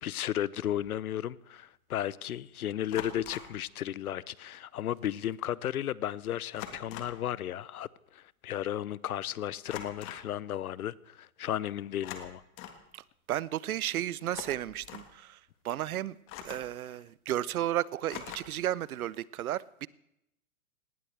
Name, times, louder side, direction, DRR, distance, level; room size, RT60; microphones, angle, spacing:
voice 1, 0.0-7.9 8.1-12.4, left 11 dB, 85° left, 0.7 m, -34 dB
sound 1, 0.8-1.0 2.9-3.6 5.0-5.1 5.3-5.6 6.5-7.3 9.7-10.3 11.9-12.8 14.2-15.1 16.3-16.8 18.1-18.7, left 9 dB, 30° left, 1.8 m, -44 dB
voice 2, 13.3-15.4 15.6-16.2 16.4-19.9, right 12 dB, 75° right, 0.7 m, -33 dB
18.5 x 18.0 x 3.4 m
hypercardioid pair, 130°, 43 cm